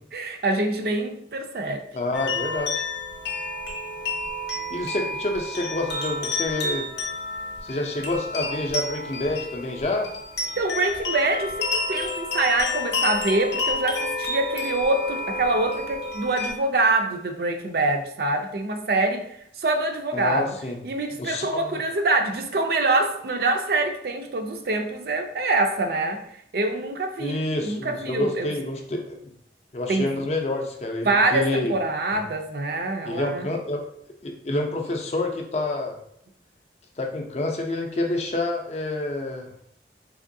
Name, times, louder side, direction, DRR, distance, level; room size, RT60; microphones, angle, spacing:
voice 1, 0.1-1.8 10.6-20.6 20.8-26.2 26.5-28.5 29.9-30.1 31.0-33.5, right 2 dB, 60° right, 5 dB, 0.4 m, -25 dB
voice 2, 1.9-2.8 4.7-6.9 7.6-10.1 20.1-20.8 21.2-21.8 27.2-29.2 29.7-31.7 33.0-33.8 34.2-36.0 37.0-39.5, left 2 dB, 35° left, 3 dB, 0.5 m, -28 dB
sound 1, 2.1-16.5, left 2 dB, 80° left, 0.6 m, -30 dB
3.5 x 2.9 x 2.6 m, 0.69 s
head